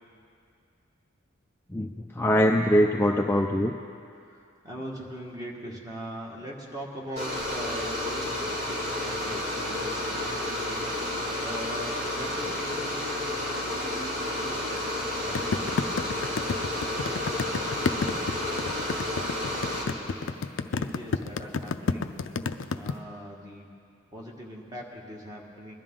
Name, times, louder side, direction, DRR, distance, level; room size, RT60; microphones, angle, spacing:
voice 1, 1.7-3.7, equal, 10° left, 1 dB, 0.4 m, -23 dB
voice 2, 4.2-16.1 16.5-20.4 20.7-22.2 22.7-23.7 24.1-25.8, equal, 20° right, -2 dB, 1.7 m, -42 dB
sound 1, 7.2-19.8, left 1 dB, 55° right, 3.2 m, -31 dB
sound 2, 15.4-22.9, left 4 dB, 75° left, 0.5 m, -29 dB
21.0 x 12.5 x 3.8 m, 2.4 s
head